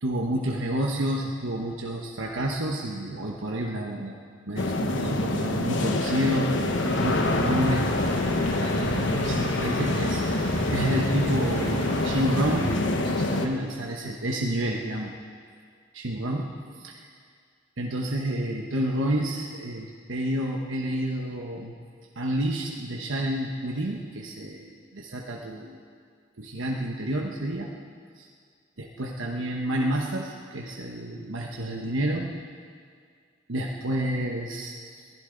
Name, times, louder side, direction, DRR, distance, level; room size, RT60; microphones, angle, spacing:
voice 1, 0.0-4.1 4.5-7.9 8.6-15.1 15.9-16.5 17.8-21.7 22.2-25.8 26.4-27.7 28.2-28.3 28.8-32.3 33.5-34.8, right 1 dB, 85° right, -1 dB, 1.2 m, -29 dB
sound 1, 4.6-13.5, left 2 dB, 70° left, 1.1 m, -26 dB
sound 2, 6.6-13.3, equal, 20° left, 4.9 m, -33 dB
22.5 x 15.5 x 3.9 m, 2.1 s
head